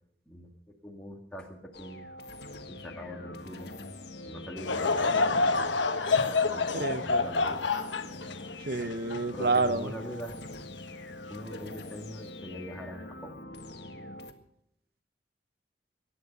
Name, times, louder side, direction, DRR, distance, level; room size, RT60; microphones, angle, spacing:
voice 1, 0.8-2.1 2.7-3.7 4.2-5.7 6.2-7.7 9.3-10.4 11.3-13.4, equal, 5° left, -1 dB, 2.1 m, -43 dB
sound 1, 1.7-14.3, left 2 dB, 65° left, 1.7 m, -44 dB
Laughter / Crowd, 4.6-10.0 10.6-10.7 11.5-11.7, left 3 dB, 90° left, 1.3 m, -28 dB
voice 2, 6.7-7.2 8.7-9.9, right 3 dB, 55° right, 12 dB, 1.0 m, -29 dB
22.5 x 10.0 x 5.4 m, 0.74 s
head